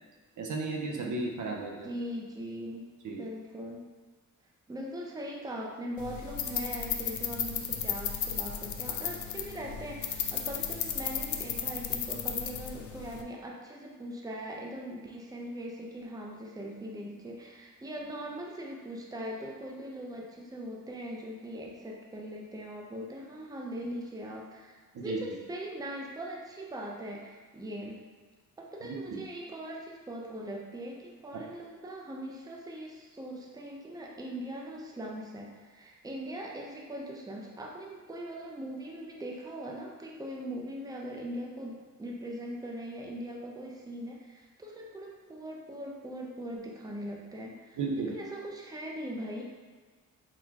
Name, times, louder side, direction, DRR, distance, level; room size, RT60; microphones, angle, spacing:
voice 1, 0.4-1.9 3.0-3.3 24.9-25.2 29.1-29.2 47.8-48.1, right 3 dB, 65° right, 0 dB, 0.7 m, -34 dB
voice 2, 1.8-2.9 3.2-3.8 4.7-28.0 28.6-49.4, equal, 10° right, -1 dB, 0.6 m, -40 dB
sound 1, 6.0-13.2, left 8 dB, 60° left, 0.5 m, -35 dB
4.0 x 2.2 x 4.6 m, 1.4 s
cardioid pair, 85°, 32 cm